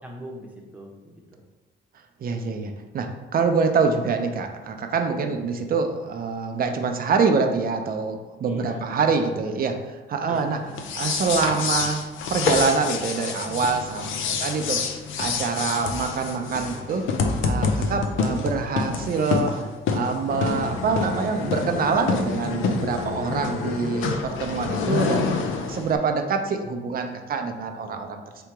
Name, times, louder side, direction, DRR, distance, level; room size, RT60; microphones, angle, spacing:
voice 1, 0.0-1.4 8.4-9.6 10.3-11.0 14.1-14.5, equal, 5° right, -1 dB, 0.9 m, -42 dB
voice 2, 2.2-10.6 11.0-12.0 12.3-14.8 15.2-17.1 17.4-19.6 19.9-25.3 25.7-28.2, right 5 dB, 50° right, 5 dB, 0.6 m, -25 dB
sound 1, 10.7-26.0, left 5 dB, 80° left, 0.5 m, -27 dB
3.4 x 2.9 x 4.7 m, 1.2 s
cardioid pair, 90°, 20 cm